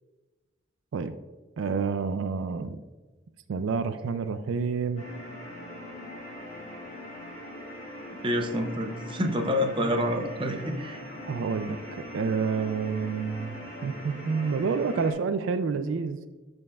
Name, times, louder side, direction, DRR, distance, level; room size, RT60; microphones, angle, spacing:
voice 1, 1.6-2.8 3.5-5.1 11.3-16.2, right 5 dB, 75° right, 12 dB, 0.3 m, -29 dB
sound 1, 5.0-15.1, left 1 dB, 35° left, 2.5 m, -41 dB
voice 2, 8.2-11.0, equal, 25° right, 5 dB, 0.6 m, -28 dB
12.5 x 5.3 x 2.3 m, 1.2 s
head